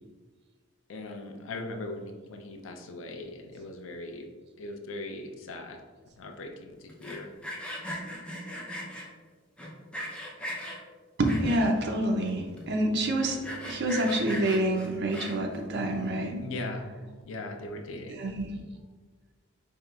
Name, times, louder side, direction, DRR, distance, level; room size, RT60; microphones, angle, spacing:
voice 1, 0.9-4.3 4.6-5.8 6.2-6.7 7.0-7.3 16.4-16.9 17.2-18.2, left 2 dB, 70° left, 4 dB, 0.4 m, -39 dB
Sawing, 6.9-9.1 9.6-10.8 11.2-11.8 12.3-12.4 12.6-12.7 13.1-15.6, equal, 5° left, 0.5 m, -38 dB
voice 2, 11.2-13.4 13.7-16.4 18.1-18.6, right 1 dB, 55° right, 2 dB, 0.5 m, -27 dB
4.4 x 2.9 x 2.3 m, 1.4 s
head